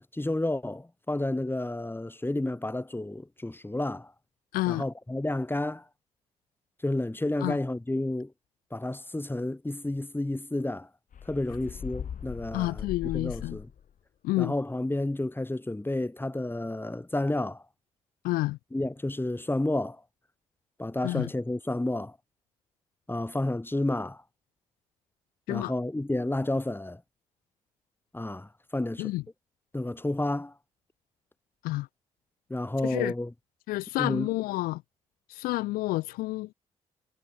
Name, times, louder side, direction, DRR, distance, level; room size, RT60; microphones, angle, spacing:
voice 1, 0.0-4.1 4.7-5.8 6.8-8.3 8.7-10.9 11.3-12.9 13.1-13.7 14.4-17.6 18.7-20.0 20.8-22.2 23.1-24.2 25.5-27.0 28.1-29.1 29.7-30.5 32.5-33.3 34.0-34.3, left 1 dB, 15° left, 2.5 m, -31 dB
voice 2, 4.5-4.8 7.4-7.6 12.5-13.6 14.2-14.5 18.2-18.6 21.0-21.3 25.5-25.7 29.0-29.2 31.6-31.9 32.8-33.1 33.7-34.8 35.3-36.5, left 19 dB, 75° left, 0.4 m, -29 dB
sound 1, 11.1-13.9, left 8 dB, 55° left, 2.3 m, -39 dB
hypercardioid pair, 45°, 16 cm